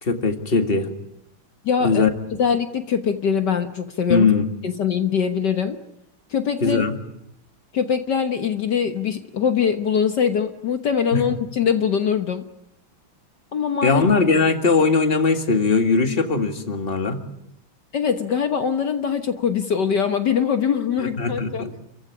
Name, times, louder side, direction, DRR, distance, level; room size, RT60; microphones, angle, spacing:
voice 1, 0.0-0.9 1.8-2.1 4.1-4.4 6.6-6.9 11.1-11.2 13.8-17.2 21.0-21.7, left 4 dB, 25° left, 6 dB, 2.1 m, -20 dB
voice 2, 1.6-2.0 2.4-4.3 4.6-5.8 6.3-6.8 7.7-12.4 13.5-14.1 17.9-21.8, left 7 dB, 60° left, 8 dB, 1.8 m, -22 dB
29.5 x 15.5 x 10.0 m, 0.83 s
omnidirectional pair, 2.3 m